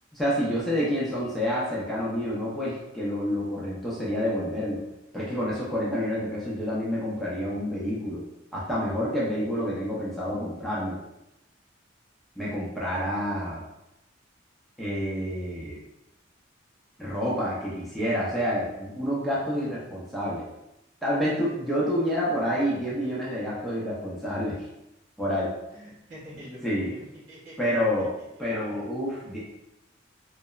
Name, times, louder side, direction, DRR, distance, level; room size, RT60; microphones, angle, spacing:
voice 1, 0.1-4.8 5.1-8.2 8.5-11.0 12.4-13.6 14.8-15.8 17.0-20.4 21.0-24.7 25.2-25.5 26.6-26.9 27.6-29.4, equal, ahead, -8 dB, 0.4 m, -28 dB
voice 2, 25.7-27.6 28.7-28.8, equal, 70° right, -8 dB, 1.4 m, -45 dB
2.9 x 2.0 x 2.3 m, 0.90 s
head